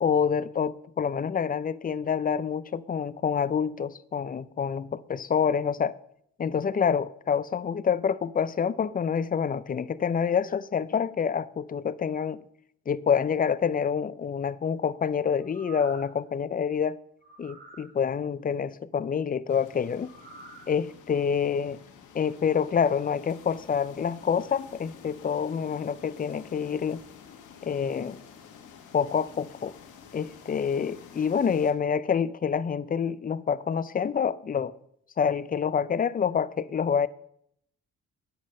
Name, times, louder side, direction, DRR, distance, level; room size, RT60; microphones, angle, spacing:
voice 1, 0.0-5.9 6.4-12.4 12.9-17.0 17.4-20.1 20.7-21.8 22.1-27.0 27.6-28.2 28.9-29.7 30.1-34.7 35.2-37.1, left 7 dB, 30° left, 0.5 m, -27 dB
sound 1, 15.4-16.2 17.2-17.9 20.0-20.7 21.1-21.2, right 3 dB, 35° right, 3.6 m, -48 dB
sound 2, 19.5-31.7, left 7 dB, 75° left, 1.6 m, -50 dB
9.2 x 7.6 x 6.4 m
cardioid pair, 90°, 30 cm